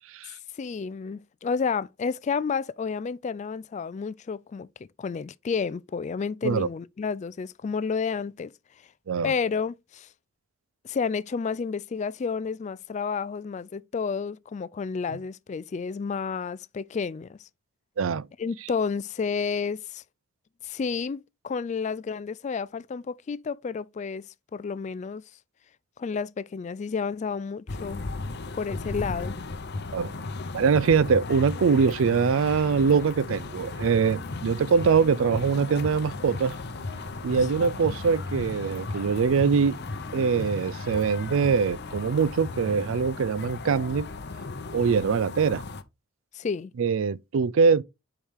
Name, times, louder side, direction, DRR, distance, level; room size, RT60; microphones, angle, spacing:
voice 1, 0.6-4.7 5.0-8.5 9.2-10.1 10.8-17.5 18.4-20.0 20.6-24.2 24.5-25.2 26.0-28.0 28.5-29.4 37.6-38.0 46.3-46.7, left 5 dB, 35° left, 0.3 m, -31 dB
sound 1, 27.7-45.8, left 3 dB, 55° left, 0.7 m, -36 dB
voice 2, 30.5-36.5 37.2-39.8 40.1-44.1 44.7-45.6 46.8-47.8, right 5 dB, 75° right, 0.4 m, -23 dB
sound 2, 33.1-40.5, right 1 dB, 50° right, 2.9 m, -50 dB
7.1 x 4.9 x 3.5 m
head